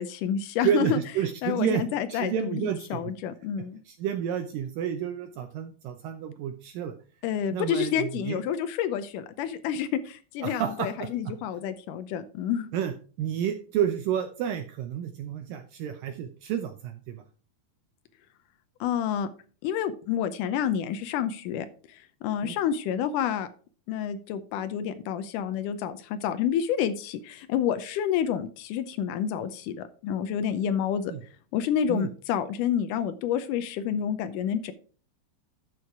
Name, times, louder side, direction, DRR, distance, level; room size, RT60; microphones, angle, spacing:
voice 1, 0.0-1.0 1.4-3.8 7.2-12.7 18.8-19.3 19.6-23.5 23.9-31.1 31.5-34.7, left 8 dB, 85° left, 10 dB, 1.8 m, -29 dB
voice 2, 0.6-1.8 2.1-3.0 3.9-6.9 7.5-8.4 10.4-11.1 12.7-17.2 22.4-22.6 31.1-31.2 31.9-32.1, right 9 dB, 75° right, 7 dB, 2.1 m, -30 dB
12.5 x 4.6 x 4.7 m, 0.40 s
omnidirectional pair, 4.6 m